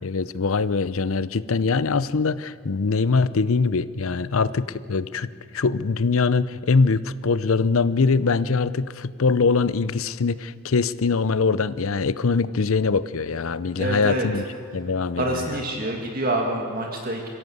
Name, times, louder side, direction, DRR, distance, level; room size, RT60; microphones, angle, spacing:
voice 1, 0.0-14.4 14.7-15.5, left 4 dB, 70° left, 16 dB, 0.6 m, -23 dB
voice 2, 13.8-14.3 15.2-17.3, right 1 dB, 40° right, 1 dB, 2.2 m, -26 dB
24.5 x 16.0 x 8.0 m, 2.2 s
head